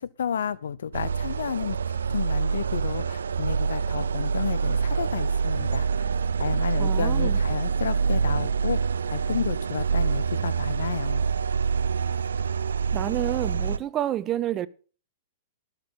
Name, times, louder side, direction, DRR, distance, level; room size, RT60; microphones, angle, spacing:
voice 1, 0.0-1.8 2.1-6.0 6.4-11.3, left 8 dB, 80° left, 0.7 m, -31 dB
sound 1, 0.9-13.8, right 6 dB, 85° right, 0.5 m, -26 dB
voice 2, 6.8-7.4 12.9-14.7, right 12 dB, 30° right, 0.6 m, -29 dB
19.0 x 6.9 x 4.1 m
hypercardioid pair, 120°, 0 cm